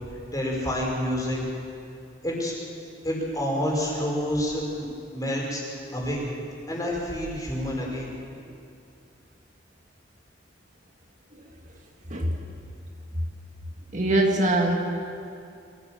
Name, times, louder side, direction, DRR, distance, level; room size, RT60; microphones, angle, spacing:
voice 1, 0.3-1.4 2.2-2.5 3.0-4.9 5.1-5.6 5.9-6.2 6.7-8.1, equal, 20° left, -3 dB, 5.3 m, -28 dB
voice 2, 13.9-14.8, right 1 dB, 45° right, 1 dB, 1.8 m, -22 dB
23.5 x 16.0 x 7.5 m, 2.5 s
head